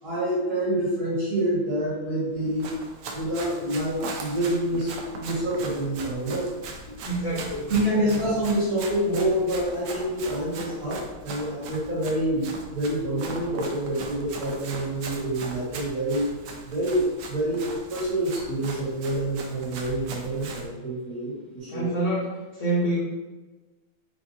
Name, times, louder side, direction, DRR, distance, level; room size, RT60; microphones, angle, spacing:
voice 1, 0.0-2.7 3.1-6.5 7.7-16.3 16.6-21.9, right 1 dB, 45° right, -8 dB, 1.7 m, -27 dB
Run, 2.4-20.7, right 3 dB, 80° right, 0.8 m, -40 dB
voice 2, 7.0-7.7 8.0-8.3 21.7-22.3 22.6-23.0, right 2 dB, 60° left, -8 dB, 0.8 m, -27 dB
5.0 x 2.4 x 2.6 m, 1.2 s
omnidirectional pair, 2.2 m